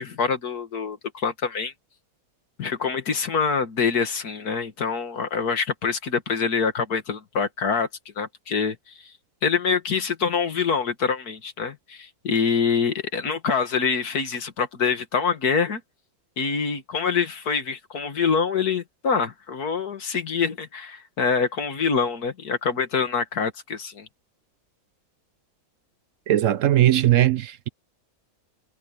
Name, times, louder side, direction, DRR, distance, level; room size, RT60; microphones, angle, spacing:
voice 1, 0.0-1.7 2.6-7.9 8.2-9.1 9.4-15.8 16.4-24.1, left 5 dB, 80° left, 2.3 m, -25 dB
voice 2, 26.3-27.7, right 13 dB, 65° right, 0.9 m, -19 dB
omnidirectional pair, 1.6 m